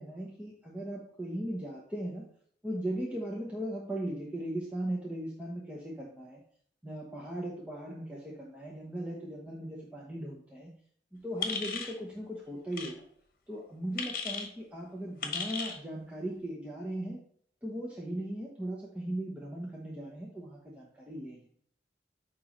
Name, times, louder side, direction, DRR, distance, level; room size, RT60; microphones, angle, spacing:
voice 1, 0.0-2.2 2.6-6.4 6.8-10.7 11.1-13.0 13.5-17.2 17.6-21.4, right 1 dB, 10° right, -4 dB, 1.0 m, -38 dB
sound 1, 11.4-12.0 12.7-12.9 14.0-14.5 15.2-15.8, left 5 dB, 50° left, 1.1 m, -35 dB
9.2 x 3.1 x 5.1 m, 0.62 s
head